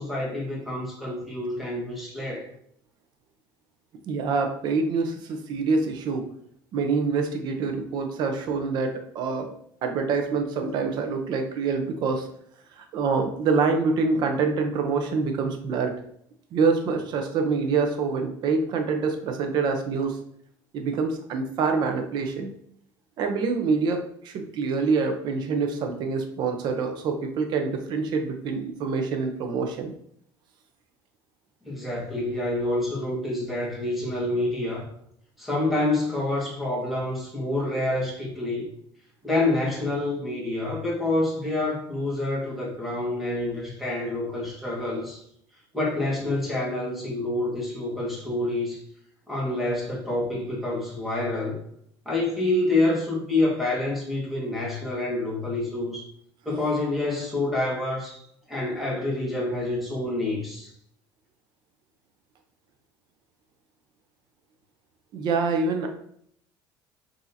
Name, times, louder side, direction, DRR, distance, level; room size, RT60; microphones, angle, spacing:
voice 1, 0.0-2.5 31.7-34.9 35.4-38.7 39.2-45.2 45.7-48.8 49.3-51.6 52.0-56.0 56.4-58.2 58.5-60.7, left 2 dB, ahead, -5 dB, 1.4 m, -27 dB
voice 2, 4.1-6.3 6.7-9.5 9.8-12.3 12.8-15.9 16.5-20.2 20.7-22.5 23.2-29.9 65.1-65.9, right 4 dB, 50° right, 4 dB, 0.7 m, -26 dB
6.2 x 2.8 x 2.7 m, 0.68 s
cardioid pair, 155°, 9 cm